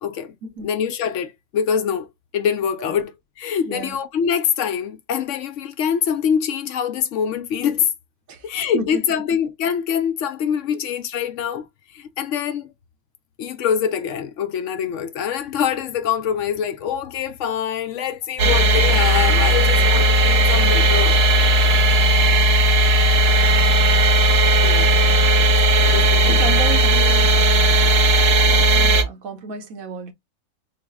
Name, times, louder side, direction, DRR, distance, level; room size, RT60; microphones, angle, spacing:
voice 1, 0.0-0.4 0.6-2.1 2.3-7.9 8.4-12.7 13.4-21.2 24.6-24.9 25.7-26.4, left 8 dB, 70° left, 0.9 m, -24 dB
voice 2, 3.7-4.0 8.3-8.4 8.7-9.0 18.4-18.6 19.7-20.1 26.2-27.4 28.5-30.1, right 4 dB, 85° right, 1.2 m, -32 dB
sound 1, 18.4-29.0, right 1 dB, 55° right, 0.8 m, -16 dB
4.0 x 2.0 x 3.3 m
omnidirectional pair, 1.4 m